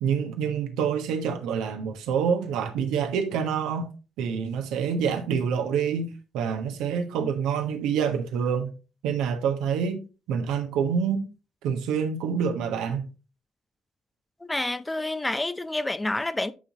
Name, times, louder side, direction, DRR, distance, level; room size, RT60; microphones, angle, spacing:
voice 1, 0.0-3.9 4.2-8.7 9.0-10.0 10.3-11.3 11.6-13.0, right 7 dB, 70° right, 1.3 m, -27 dB
voice 2, 14.4-16.5, left 2 dB, 15° left, 0.6 m, -28 dB
10.0 x 5.5 x 2.9 m
hypercardioid pair, 50°, 0 cm